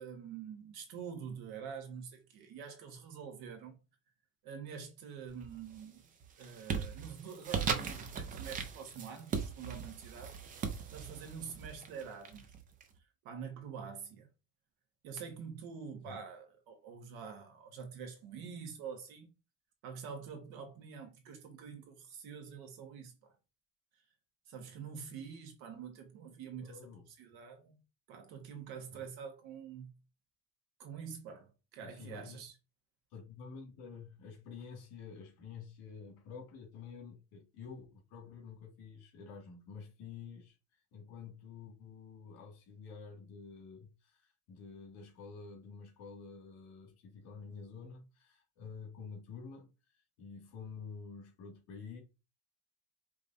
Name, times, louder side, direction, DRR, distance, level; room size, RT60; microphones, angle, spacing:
voice 1, 0.0-3.8 4.4-6.0 6.4-10.4 10.9-12.4 13.2-14.3 15.0-19.3 19.8-23.3 24.5-26.8 27.2-27.8 28.1-29.9 30.8-32.5, right 6 dB, 60° right, 1.4 m, -46 dB
sound 1, 5.3-5.8 6.2-12.8, right 6 dB, 20° right, 0.3 m, -39 dB
voice 2, 26.6-27.1 31.8-32.4 33.1-40.6 40.9-52.0, left 5 dB, 60° left, 2.1 m, -49 dB
5.1 x 3.0 x 2.6 m
cardioid pair, 170°, 41 cm